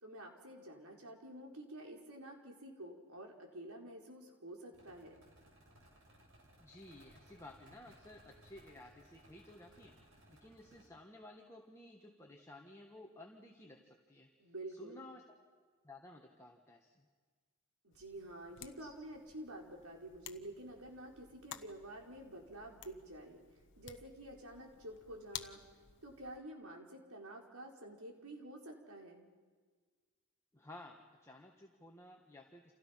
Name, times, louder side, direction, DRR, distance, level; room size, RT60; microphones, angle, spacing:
voice 1, 0.0-5.2 14.4-15.0 17.8-23.4 23.8-25.6 26.0-29.3, right 1 dB, 80° right, 1 dB, 4.6 m, -49 dB
sound 1, 4.7-10.9, right 1 dB, 60° right, 6.3 m, -63 dB
voice 2, 6.6-10.0 10.3-14.3 14.7-15.2 15.8-17.1 18.8-18.9 30.5-32.7, left 1 dB, 15° left, 0 dB, 1.7 m, -55 dB
sound 2, 17.9-26.4, left 9 dB, 55° left, 1.2 m, -54 dB
30.0 x 28.0 x 5.9 m, 1.5 s
head